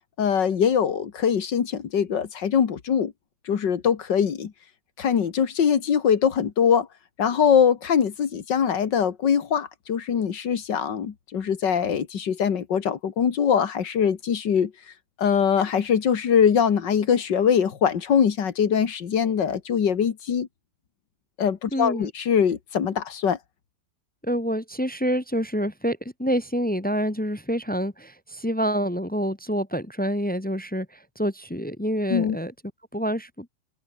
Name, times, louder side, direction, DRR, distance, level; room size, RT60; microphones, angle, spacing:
voice 1, 0.2-3.1 3.5-4.5 5.0-6.9 7.2-14.7 15.2-20.5 21.4-23.4 32.1-32.4, left 7 dB, 75° left, 2.4 m, -22 dB
voice 2, 21.7-22.1 24.2-32.5 32.9-33.5, equal, 10° left, 0.4 m, -27 dB
omnidirectional pair, 1.9 m